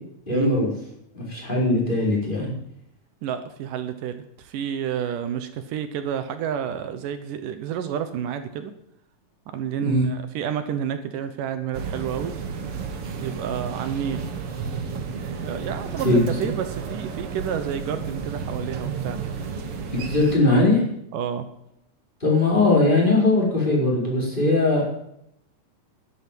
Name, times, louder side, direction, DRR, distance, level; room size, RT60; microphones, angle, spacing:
voice 1, 0.3-0.7 1.1-2.5 9.8-10.1 16.0-16.4 19.9-20.8 22.2-24.9, left 2 dB, 15° left, -4 dB, 4.9 m, -20 dB
voice 2, 3.2-8.7 9.5-12.3 13.2-14.2 15.4-19.2 21.1-21.5, right 8 dB, 75° right, 9 dB, 2.5 m, -30 dB
sound 1, 11.7-20.3, right 5 dB, 55° right, 2.0 m, -32 dB
12.0 x 11.5 x 7.7 m, 0.76 s
omnidirectional pair, 3.8 m